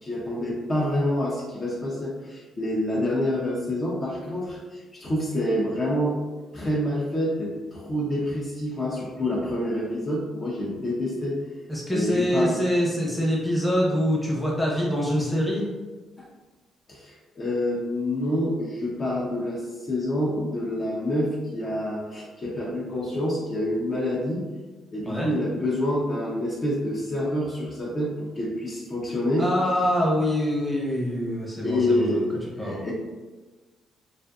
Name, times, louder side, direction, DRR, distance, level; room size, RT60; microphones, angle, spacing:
voice 1, 0.0-6.2 6.5-11.3 11.9-12.6 16.2-16.3 16.9-24.5 24.9-29.5 31.6-32.2 32.5-32.9, left 1 dB, 35° left, -4 dB, 0.6 m, -27 dB
voice 2, 11.7-15.7 25.1-25.3 29.4-32.2 32.6-32.9, equal, 5° left, -4 dB, 0.7 m, -25 dB
2.5 x 2.5 x 2.3 m, 1.3 s
cardioid pair, 90°, 0 cm